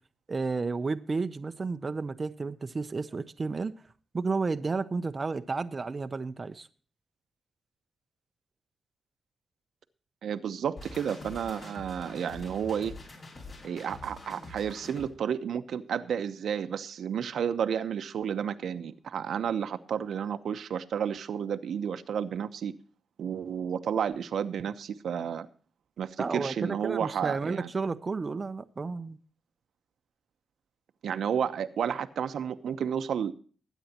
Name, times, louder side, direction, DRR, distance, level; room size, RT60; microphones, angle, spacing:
voice 1, 0.3-3.7 4.1-6.7 26.2-29.2, right 4 dB, 35° right, 0.6 m, -32 dB
voice 2, 10.2-12.9 13.6-22.7 23.2-25.5 26.0-27.7 31.0-33.3, right 8 dB, 80° right, 0.9 m, -31 dB
sound 1, 10.8-15.1, left 2 dB, 55° left, 6.5 m, -45 dB
21.0 x 9.2 x 2.9 m
wide cardioid pair, 120°, 0 cm